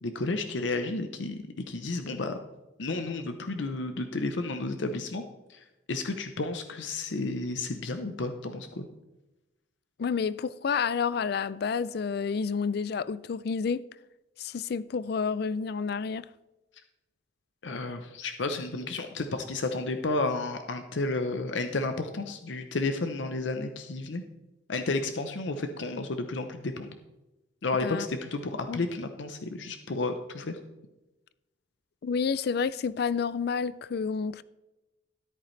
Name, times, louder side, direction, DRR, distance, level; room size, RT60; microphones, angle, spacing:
voice 1, 0.0-2.4 2.8-5.2 5.5-8.9 17.6-24.2 24.7-26.9 27.6-30.6, left 3 dB, 70° left, 0.7 m, -32 dB
voice 2, 10.0-13.8 14.4-16.3 27.8-28.1 28.7-28.8 32.0-34.4, left 5 dB, 55° left, 0.4 m, -29 dB
13.0 x 10.5 x 3.2 m
head